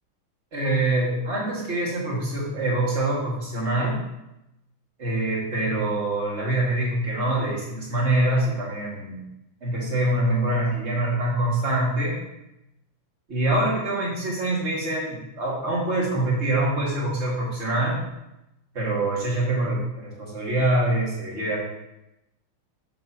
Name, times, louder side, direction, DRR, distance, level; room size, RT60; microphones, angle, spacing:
voice 1, 0.5-4.0 5.0-9.2 9.6-12.2 13.3-18.0 18.7-21.6, right 1 dB, 35° right, -4 dB, 1.9 m, -25 dB
6.6 x 6.6 x 2.8 m, 0.90 s
omnidirectional pair, 2.4 m